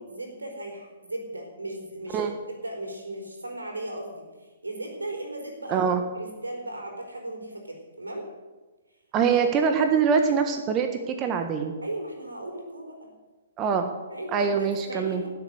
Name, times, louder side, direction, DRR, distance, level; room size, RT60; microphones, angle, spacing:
voice 1, 0.0-2.2 2.6-5.9 6.1-8.3 11.8-13.1 14.1-15.3, right 1 dB, 90° right, 3 dB, 4.4 m, -36 dB
voice 2, 5.7-6.0 9.1-11.7 13.6-13.9 14.3-15.2, right 6 dB, 25° right, 6 dB, 1.4 m, -24 dB
17.5 x 7.9 x 7.8 m, 1.3 s
figure-of-eight pair, 125°, 0 cm